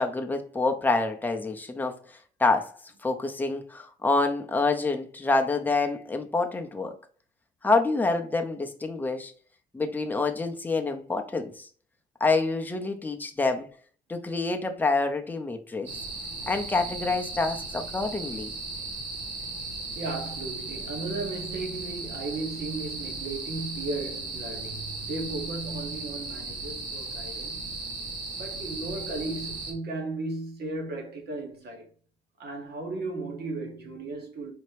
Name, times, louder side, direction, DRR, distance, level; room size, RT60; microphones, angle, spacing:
voice 1, 0.0-2.0 2.4-2.7 3.0-6.9 7.6-9.3 9.7-11.7 12.2-13.7 14.1-15.9 16.5-18.5, left 3 dB, 10° left, 0.6 m, -27 dB
sound 1, 15.9-29.7, right 3 dB, 80° right, 1.4 m, -36 dB
voice 2, 19.9-27.7 28.3-31.9 32.4-34.5, right 3 dB, 65° right, 1.5 m, -35 dB
4.2 x 2.8 x 3.2 m
cardioid pair, 140°, 18 cm